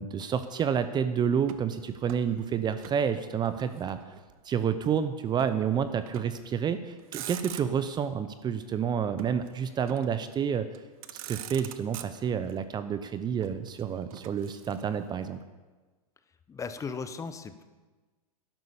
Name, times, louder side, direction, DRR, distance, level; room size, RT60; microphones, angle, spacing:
voice 1, 0.0-4.0 4.4-10.7 11.3-15.4, right 7 dB, 20° right, 11 dB, 0.7 m, -29 dB
Motor vehicle (road), 1.4-3.1 3.3-4.4 5.4-5.6 6.1-6.5 6.9-8.0 9.2-10.2 10.7-10.8 11.0-12.5 13.4-15.1, right 11 dB, 60° right, 1.1 m, -44 dB
voice 2, 16.5-17.6, left 5 dB, 15° left, 11 dB, 0.9 m, -37 dB
12.0 x 11.0 x 7.0 m, 1.3 s
hypercardioid pair, 120°, 20 cm